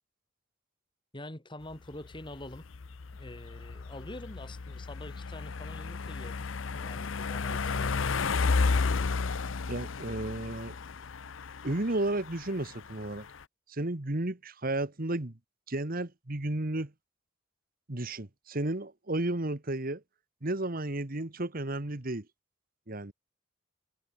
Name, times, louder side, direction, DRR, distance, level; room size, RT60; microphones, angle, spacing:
voice 1, 1.1-2.7 3.1-6.5 6.7-8.0, left 1 dB, 25° left, 4.0 m, -45 dB
sound 1, 1.7-13.4, left 4 dB, 80° left, 0.7 m, -33 dB
voice 2, 9.7-10.8 11.6-13.3 13.7-15.3 15.7-16.9 17.9-20.0 20.4-22.2 22.9-23.1, right 2 dB, 45° right, 1.7 m, -33 dB
head